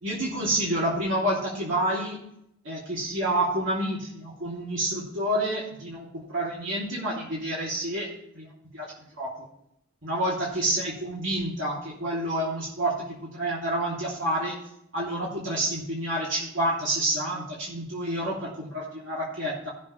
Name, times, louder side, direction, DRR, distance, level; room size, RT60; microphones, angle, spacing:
voice 1, 0.0-2.2 2.6-8.5 8.7-8.9 9.2-9.3 10.0-14.6 14.9-19.7, right 1 dB, 70° right, -6 dB, 3.0 m, -28 dB
17.5 x 7.5 x 3.3 m, 0.76 s
head